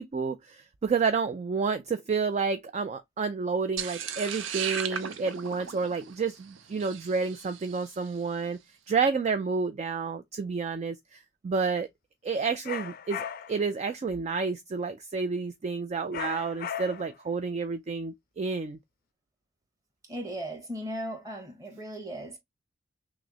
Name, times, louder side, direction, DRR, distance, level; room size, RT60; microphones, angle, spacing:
voice 1, 0.0-8.6 8.9-11.9 12.2-18.8, right 4 dB, 35° right, 0.3 m, -30 dB
sound 1, 3.8-8.1, right 7 dB, 85° right, 0.6 m, -36 dB
sound 2, 12.6-13.7 16.1-17.2, left 8 dB, 50° left, 0.4 m, -37 dB
voice 2, 20.1-22.4, equal, 20° right, 1.3 m, -37 dB
6.0 x 2.1 x 2.9 m
head